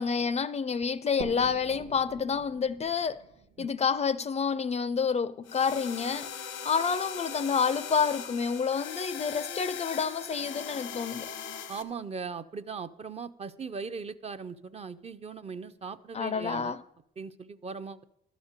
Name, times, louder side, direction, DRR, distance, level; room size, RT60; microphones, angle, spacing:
voice 1, 0.0-3.2 3.6-6.3 6.6-11.3 16.1-16.8, left 6 dB, 35° left, 0.4 m, -29 dB
sound 1, 1.2-4.7, right 6 dB, 55° right, 0.8 m, -46 dB
sound 2, 5.4-11.8, left 7 dB, 90° left, 0.9 m, -40 dB
voice 2, 11.7-16.7 17.2-18.0, right 5 dB, 30° right, 0.5 m, -39 dB
12.0 x 5.1 x 8.0 m
cardioid pair, 90°, 20 cm